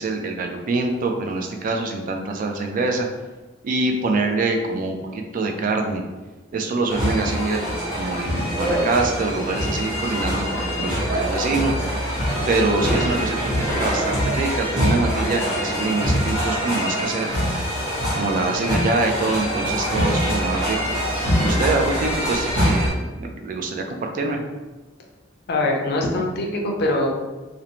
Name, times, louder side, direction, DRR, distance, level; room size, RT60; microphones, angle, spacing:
voice 1, 0.0-3.1 3.6-6.0 6.5-11.7 12.5-13.4 13.8-17.4 18.1-20.9 21.4-24.4, right 3 dB, 45° right, 3 dB, 0.3 m, -25 dB
sound 1, 6.9-22.9, equal, 20° right, 1.1 m, -24 dB
voice 2, 25.5-27.1, left 2 dB, 55° left, 1 dB, 0.4 m, -22 dB
2.5 x 2.0 x 2.9 m, 1.2 s
head